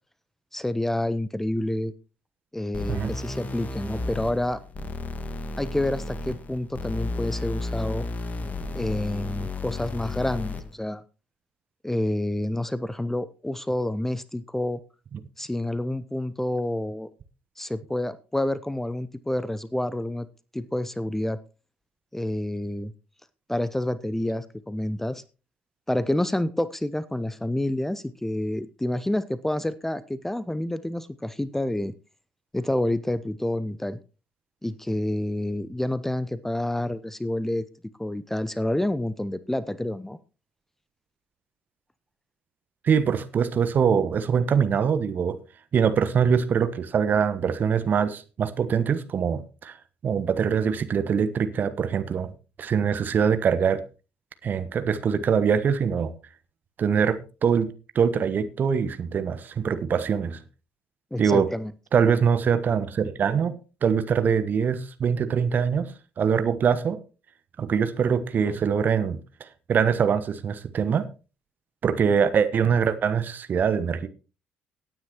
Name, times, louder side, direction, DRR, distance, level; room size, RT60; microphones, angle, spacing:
voice 1, 0.5-1.9 2.5-4.6 5.6-8.1 8.7-11.0 11.8-14.8 15.4-17.1 17.6-20.3 20.5-21.4 22.1-22.9 23.5-25.2 25.9-31.9 32.5-34.0 34.6-37.6 38.0-40.2 61.1-61.7, left 1 dB, 5° left, 0.7 m, -28 dB
sound 1, 2.7-10.7, left 3 dB, 35° left, 1.8 m, -33 dB
voice 2, 42.8-45.4 45.7-49.8 50.0-52.3 52.6-53.8 54.4-56.1 56.8-60.4 61.2-61.5 61.9-63.5 63.8-65.9 66.2-67.0 67.6-71.1 71.8-74.1, right 7 dB, 40° right, 1.1 m, -23 dB
17.5 x 9.4 x 3.0 m
figure-of-eight pair, 50°, 5 cm